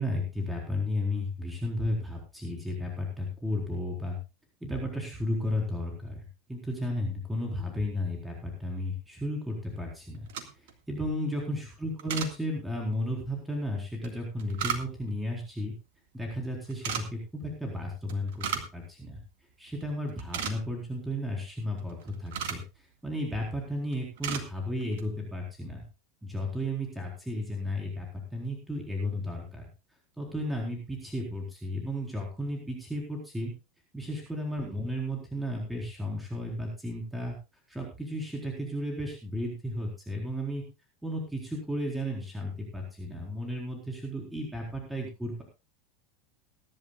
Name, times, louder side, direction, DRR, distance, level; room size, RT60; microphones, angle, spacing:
voice 1, 0.0-4.2 4.6-15.7 16.1-19.2 19.6-25.8 26.2-29.6 30.2-33.5 33.9-37.3 37.7-40.6 41.0-45.4, left 1 dB, 5° right, 0 dB, 4.1 m, -34 dB
sound 1, 10.1-10.8 12.0-12.3 14.0-15.2 16.7-17.0 18.1-18.8 19.1-19.2 19.7-19.8 20.1-20.9 21.8-22.7 23.4-23.7 23.9-24.5 24.8-25.1, right 8 dB, 65° right, 1.9 m, -35 dB
22.0 x 11.0 x 2.4 m, 0.29 s
figure-of-eight pair, 80°, 0 cm